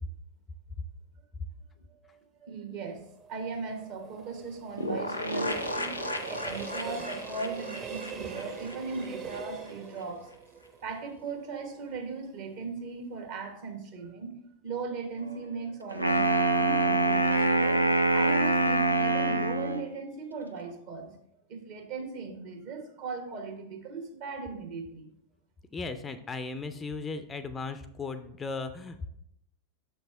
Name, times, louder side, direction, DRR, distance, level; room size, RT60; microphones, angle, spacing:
voice 1, 2.4-3.0 3.3-10.3 10.8-14.3 14.6-17.8 18.1-21.1 21.5-25.1, right 4 dB, 50° right, 4 dB, 1.2 m, -38 dB
Train, 3.0-12.0 12.4-12.5, right 5 dB, 30° right, 0.8 m, -43 dB
sound 1, 4.8-9.4 9.7-9.8 10.0-10.1, left 1 dB, 85° left, 0.6 m, -35 dB
Wind instrument woodwind instrument, 15.9-19.9, right 2 dB, 90° right, 0.4 m, -24 dB
voice 2, 25.7-29.1, left 4 dB, 20° left, 11 dB, 0.4 m, -36 dB
6.6 x 5.9 x 3.3 m, 0.73 s
figure-of-eight pair, 90°, 0 cm